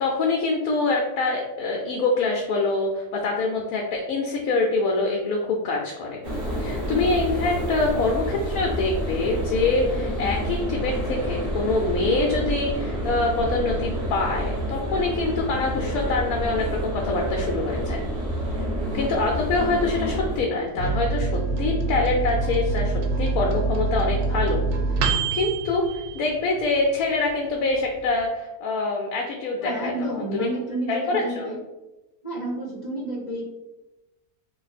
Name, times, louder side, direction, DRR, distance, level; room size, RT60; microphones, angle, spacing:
voice 1, 0.0-6.2 6.6-18.0 18.9-24.6 25.0-29.9 30.2-30.5 30.9-31.5, left 3 dB, 75° left, 0 dB, 1.0 m, -25 dB
sound 1, 6.2-20.4, equal, 35° right, 1.1 m, -28 dB
Microwave oven, 20.8-26.9 27.3-27.4 27.6-28.3, right 3 dB, 80° right, 1.1 m, -25 dB
voice 2, 29.6-31.6 32.2-33.4, right 2 dB, 30° left, -5 dB, 1.1 m, -30 dB
2.8 x 2.6 x 4.0 m, 1.0 s
omnidirectional pair, 1.6 m